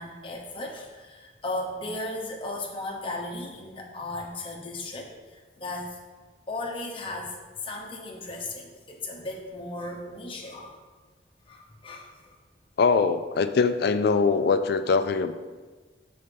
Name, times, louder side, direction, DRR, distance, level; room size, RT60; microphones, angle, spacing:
voice 1, 0.0-6.0 6.5-10.8 11.5-12.4, left 2 dB, 25° left, 0 dB, 0.8 m, -36 dB
voice 2, 12.8-15.3, left 4 dB, 55° left, 11 dB, 0.3 m, -22 dB
5.4 x 4.3 x 5.2 m, 1.4 s
head